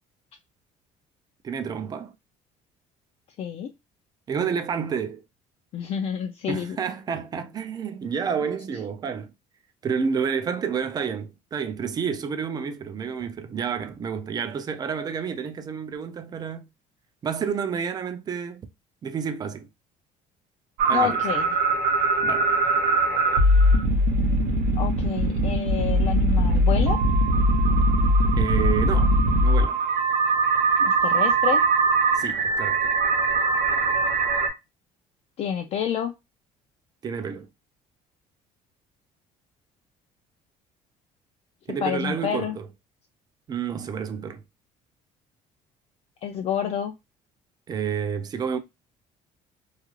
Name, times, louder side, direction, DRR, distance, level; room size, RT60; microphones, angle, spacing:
voice 1, 1.4-2.1 4.3-5.2 6.5-9.3 9.8-16.7 17.2-18.6 19.0-19.7 20.9-21.2 22.2-22.5 28.4-29.1 29.4-29.8 32.1-32.9 37.0-37.5 41.7-42.7 43.5-44.4 47.7-48.6, right 6 dB, 30° right, 0.4 m, -29 dB
voice 2, 3.4-3.7 5.7-6.8 20.9-21.5 24.8-27.0 30.8-31.6 35.4-36.1 41.8-42.6 46.2-46.9, left 8 dB, 45° left, 0.4 m, -28 dB
sound 1, 20.8-34.5, right 2 dB, 70° right, 0.8 m, -21 dB
2.4 x 2.4 x 3.0 m
cardioid pair, 140°, 14 cm